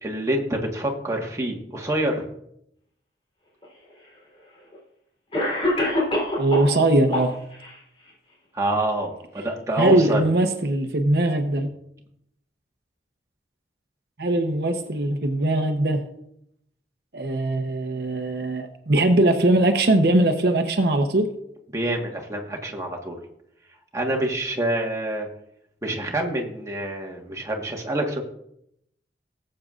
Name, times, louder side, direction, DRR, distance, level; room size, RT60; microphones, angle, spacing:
voice 1, 0.0-2.2 8.5-10.2 21.7-23.2 23.9-25.3 25.8-28.2, right 1 dB, 15° right, 0 dB, 1.4 m, -26 dB
Cough, 3.6-3.7 4.7-4.8 5.3-6.8 7.1-7.7, left 1 dB, 30° left, 3.5 m, -24 dB
voice 2, 6.4-7.4 9.8-11.7 14.2-16.0 17.1-21.3, right 1 dB, 60° right, 5 dB, 0.8 m, -21 dB
19.5 x 7.7 x 2.5 m, 0.76 s
head